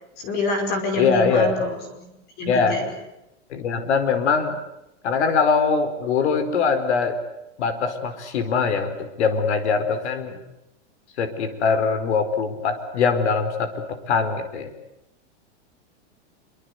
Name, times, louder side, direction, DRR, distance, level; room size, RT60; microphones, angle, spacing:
voice 1, 0.2-2.1 2.4-2.9, left 2 dB, 25° left, 5 dB, 5.1 m, -27 dB
voice 2, 0.9-1.7 2.5-2.8 3.5-4.6 5.0-7.2 7.6-10.4 11.2-14.7, left 5 dB, 65° left, 10 dB, 4.8 m, -22 dB
27.0 x 24.5 x 8.1 m, 0.88 s
supercardioid pair, 170°, 36 cm